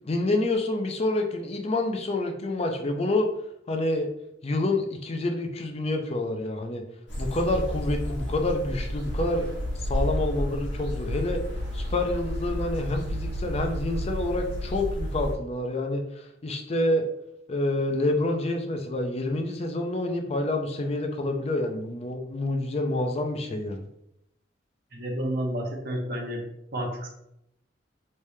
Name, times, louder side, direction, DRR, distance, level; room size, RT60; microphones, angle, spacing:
voice 1, 0.0-3.3 3.7-4.1 4.4-6.8 7.2-9.5 9.8-11.4 11.7-17.0 17.5-23.8, left 2 dB, 35° left, 4 dB, 0.4 m, -28 dB
sound 1, 7.1-15.3, equal, 65° left, 1.2 m, -31 dB
voice 2, 24.9-26.4 26.7-27.1, equal, 55° right, -1 dB, 0.9 m, -30 dB
3.3 x 3.2 x 2.7 m, 0.80 s
head